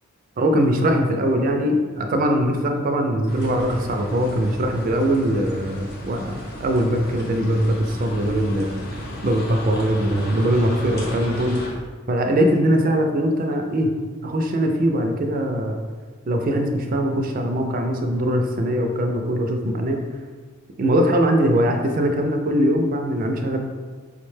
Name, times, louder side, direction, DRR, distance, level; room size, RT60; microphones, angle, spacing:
voice 1, 0.4-8.8 9.2-11.6 12.1-13.9 14.2-15.8 16.3-20.0 20.8-23.6, equal, 40° right, 4 dB, 0.3 m, -21 dB
sound 1, 3.3-11.7, left 1 dB, 45° left, 0.7 m, -35 dB
4.7 x 2.1 x 3.1 m, 1.5 s
head